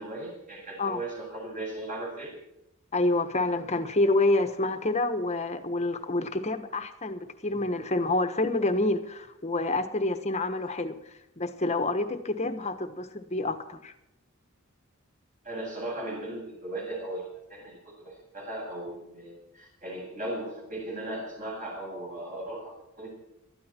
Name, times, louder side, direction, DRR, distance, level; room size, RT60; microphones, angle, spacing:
voice 1, 0.0-2.3 15.4-23.2, right 1 dB, 40° right, -1 dB, 7.7 m, -37 dB
voice 2, 2.9-13.9, left 2 dB, 30° left, 9 dB, 1.3 m, -28 dB
19.0 x 13.5 x 4.4 m, 0.86 s
head